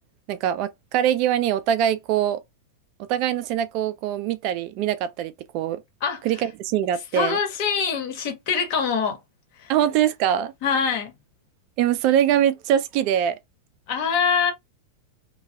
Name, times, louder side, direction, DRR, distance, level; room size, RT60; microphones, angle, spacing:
voice 1, 0.3-2.4 3.1-5.8 6.2-7.4 9.7-10.5 11.8-13.3, right 10 dB, 50° right, 0.4 m, -23 dB
voice 2, 7.1-9.2 9.6-9.7 10.6-11.1 13.9-14.5, left 6 dB, 55° left, 1.1 m, -24 dB
2.2 x 2.1 x 2.8 m
hypercardioid pair, 120°, 0 cm